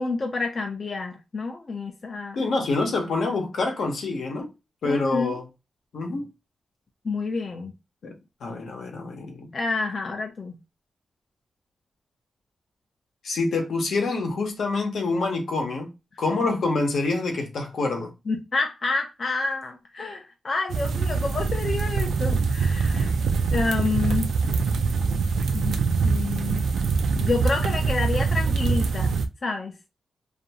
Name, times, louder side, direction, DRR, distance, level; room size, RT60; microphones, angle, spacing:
voice 1, 0.0-2.4 4.8-5.3 7.0-7.7 9.5-10.6 18.3-23.1 23.5-24.3 25.5-26.7 27.2-29.8, left 3 dB, 40° left, 0.4 m, -29 dB
voice 2, 2.4-4.5 4.8-5.4 5.9-6.3 8.0-9.5 13.2-15.9 16.2-18.1, left 3 dB, 75° left, 0.8 m, -26 dB
sound 1, 20.7-29.3, right 4 dB, 85° right, 0.3 m, -24 dB
2.5 x 2.2 x 2.8 m
wide cardioid pair, 125°, 0 cm